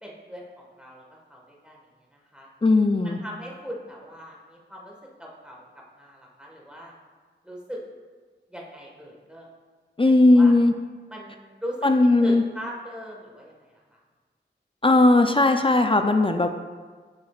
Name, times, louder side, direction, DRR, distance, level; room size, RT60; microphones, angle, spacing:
voice 1, 0.0-1.8 2.1-2.5 3.0-6.9 7.4-7.8 8.5-9.5 10.0-10.5 11.1-14.0, equal, 5° right, -3 dB, 1.5 m, -40 dB
voice 2, 2.6-3.2 10.0-10.7 11.8-12.4 14.8-16.5, left 2 dB, 30° left, 6 dB, 0.4 m, -18 dB
7.3 x 6.0 x 2.4 m, 1.5 s
wide cardioid pair, 40°, 19 cm